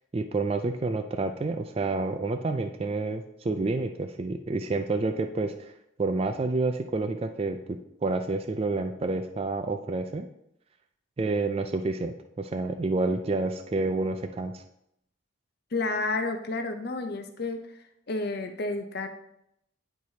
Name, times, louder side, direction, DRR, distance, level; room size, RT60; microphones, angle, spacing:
voice 1, 0.1-5.7 6.0-10.3 11.2-14.6, right 3 dB, 30° right, 6 dB, 0.3 m, -29 dB
voice 2, 15.7-17.6 18.1-19.1, left 3 dB, 50° left, 6 dB, 0.6 m, -30 dB
10.0 x 4.6 x 2.8 m, 0.78 s
head